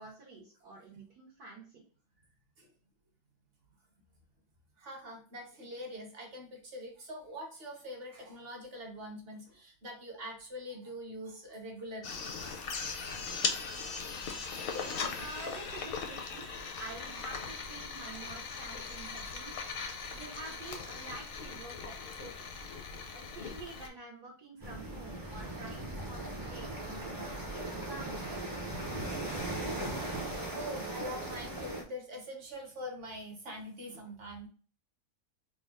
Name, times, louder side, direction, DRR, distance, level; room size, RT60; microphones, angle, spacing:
voice 1, 0.0-1.8 15.2-16.5 16.8-22.7 23.1-28.2, right 2 dB, 85° right, -3 dB, 1.5 m, -48 dB
voice 2, 4.8-12.9 13.9-14.2 20.0-20.1 30.5-34.5, equal, 45° right, 1 dB, 0.9 m, -44 dB
sound 1, 12.0-23.9, left 5 dB, 60° left, 0.6 m, -39 dB
sound 2, 24.6-31.8, right 1 dB, 30° right, 0.4 m, -38 dB
3.7 x 2.2 x 3.5 m, 0.41 s
omnidirectional pair, 1.6 m